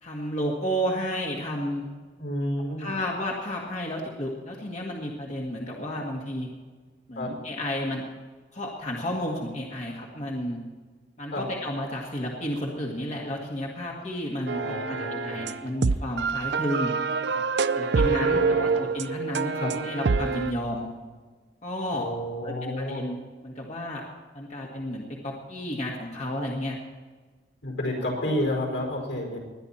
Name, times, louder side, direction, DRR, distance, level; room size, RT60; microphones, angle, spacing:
voice 1, 0.0-1.9 2.8-6.5 7.1-8.0 8.5-10.6 11.2-16.9 17.3-17.4 17.8-20.9 21.6-22.1 22.4-23.2 23.4-24.0 24.3-26.8 28.1-28.4, equal, 40° left, -2 dB, 1.9 m, -32 dB
voice 2, 2.2-2.9 7.1-7.3 11.3-11.4 14.5-15.4 18.0-18.7 19.6-19.7 21.9-23.1 27.6-29.4, left 1 dB, 80° left, 1 dB, 5.0 m, -30 dB
sound 1, 14.5-20.5, right 4 dB, 70° right, 0.5 m, -26 dB
20.5 x 10.5 x 4.3 m, 1.4 s
head